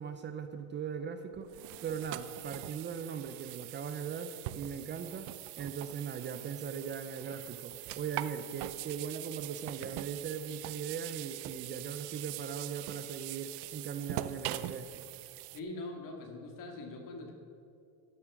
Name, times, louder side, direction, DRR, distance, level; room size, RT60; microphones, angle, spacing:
voice 1, 0.0-15.1, right 7 dB, 30° right, 8 dB, 0.5 m, -39 dB
sound 1, 1.3-15.6, right 16 dB, 75° right, 0.6 m, -43 dB
voice 2, 15.5-17.3, left 2 dB, 55° left, 2 dB, 2.1 m, -42 dB
12.5 x 7.3 x 6.1 m, 2.5 s
cardioid pair, 145°, 39 cm